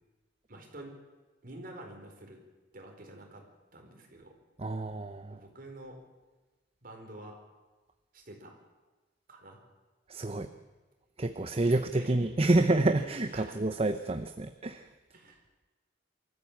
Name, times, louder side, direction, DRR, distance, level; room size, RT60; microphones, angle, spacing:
voice 1, 0.5-1.0 1.4-2.4 2.7-3.4 3.7-4.4 5.3-6.0 6.8-7.4 8.1-8.5 9.3-9.6 10.2-10.6 11.7-12.3 13.3-13.5 15.1-15.4, right 1 dB, 50° right, 3 dB, 4.6 m, -48 dB
voice 2, 4.6-5.4 10.1-10.5 11.2-14.9, right 2 dB, 30° right, 9 dB, 0.8 m, -28 dB
25.0 x 14.0 x 8.7 m, 1.2 s
head